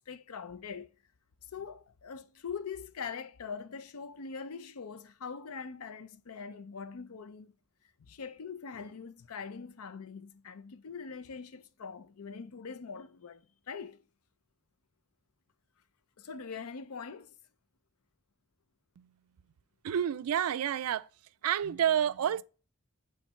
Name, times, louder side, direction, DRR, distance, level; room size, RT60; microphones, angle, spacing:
voice 1, 0.1-0.9 1.5-7.5 8.0-14.0 16.2-17.3, left 5 dB, 75° left, 0.5 m, -43 dB
voice 2, 19.8-21.1 21.4-22.4, right 9 dB, 75° right, 0.3 m, -29 dB
7.3 x 3.2 x 4.3 m
head